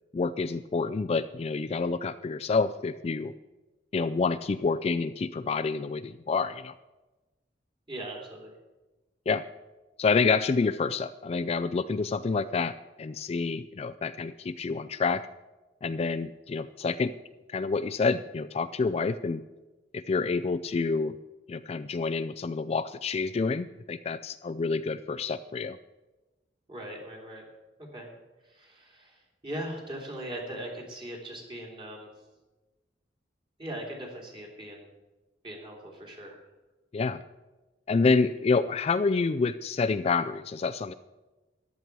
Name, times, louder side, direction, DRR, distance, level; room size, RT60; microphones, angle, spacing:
voice 1, 0.1-3.3 3.9-6.7 9.3-9.4 10.0-15.2 15.8-17.1 17.5-19.4 19.9-21.1 21.5-25.8 36.9-37.2 37.9-40.9, left 4 dB, 35° left, 11 dB, 0.3 m, -28 dB
voice 2, 7.9-8.5 26.7-27.4 27.8-28.1 28.4-32.1 33.6-34.9 35.4-36.4, right 1 dB, 30° right, 0 dB, 2.9 m, -40 dB
14.0 x 10.5 x 4.6 m, 1.1 s
head